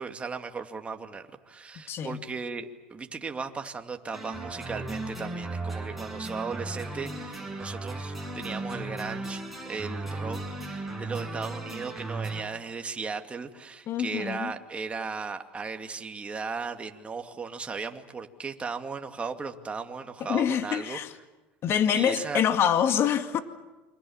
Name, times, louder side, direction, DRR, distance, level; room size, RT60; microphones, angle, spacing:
voice 1, 0.0-21.0 21.9-22.4, right 4 dB, 20° right, 2.5 m, -36 dB
voice 2, 1.8-2.2 13.9-14.5 20.3-21.1 21.6-23.4, left 9 dB, 45° left, 2.1 m, -26 dB
sound 1, 4.1-12.4, right 2 dB, ahead, 7.6 m, -36 dB
29.0 x 25.0 x 7.3 m
supercardioid pair, 95°, 6 cm